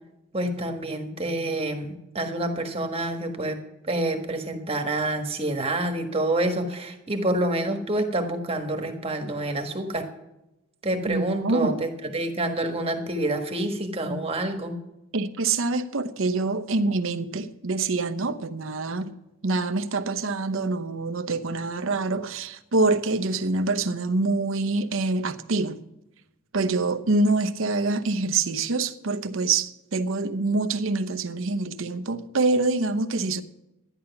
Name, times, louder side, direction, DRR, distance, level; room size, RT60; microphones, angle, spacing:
voice 1, 0.3-3.6 3.8-10.1 10.8-14.8, right 1 dB, 25° right, 1.4 m, -27 dB
voice 2, 11.1-11.8 15.1-19.1 19.4-25.8 26.5-33.4, right 3 dB, 65° right, 0.8 m, -25 dB
13.0 x 10.0 x 5.9 m
head